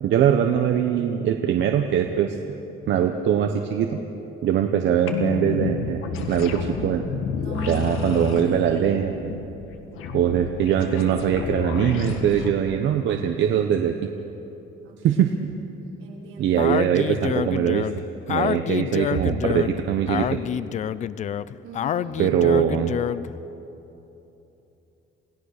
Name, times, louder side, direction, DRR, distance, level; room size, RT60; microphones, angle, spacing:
voice 1, 0.0-2.4 2.9-4.0 4.4-7.0 7.7-9.3 10.1-13.9 15.0-15.3 16.4-17.9 18.3-20.3 22.2-22.9, right 9 dB, 60° right, 5 dB, 1.0 m, -22 dB
sound 1, 5.1-12.5, left 5 dB, 75° left, 1.9 m, -30 dB
voice 2, 7.4-8.9 14.8-15.3 16.0-16.7 19.1-19.4 21.6-22.3, right 4 dB, 80° right, -4 dB, 5.3 m, -35 dB
Speech, 16.6-23.3, left 9 dB, 35° left, 0.4 m, -27 dB
28.5 x 17.5 x 6.6 m, 3.0 s
cardioid pair, 175°, 21 cm